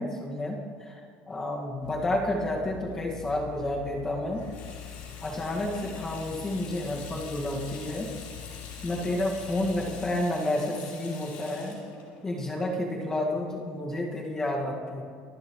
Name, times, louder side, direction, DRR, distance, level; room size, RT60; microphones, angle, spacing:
voice 1, 0.0-4.5 5.2-8.1 8.8-11.8 12.2-15.0, left 1 dB, 15° left, -1 dB, 1.8 m, -30 dB
sound 1, 1.8-10.1, left 9 dB, 90° left, 0.8 m, -44 dB
Water tap faucet / Sink (filling or washing), 4.3-13.6, left 5 dB, 70° left, 4.4 m, -46 dB
25.0 x 11.5 x 3.2 m, 2.2 s
cardioid pair, 175°, 4 cm